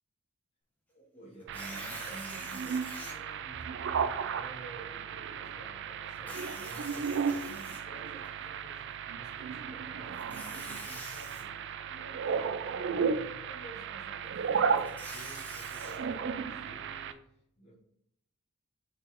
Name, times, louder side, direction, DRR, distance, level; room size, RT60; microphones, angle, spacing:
voice 1, 0.9-17.7, right 2 dB, 30° left, -5 dB, 2.4 m, -51 dB
Tearing, 1.4-3.1 3.8-3.9 6.1-8.3 10.1-11.4 14.6-16.0, left 1 dB, 5° left, 1.3 m, -46 dB
sound 1, 1.5-17.1, right 6 dB, 55° right, 0.4 m, -35 dB
6.3 x 4.3 x 3.6 m, 0.75 s
head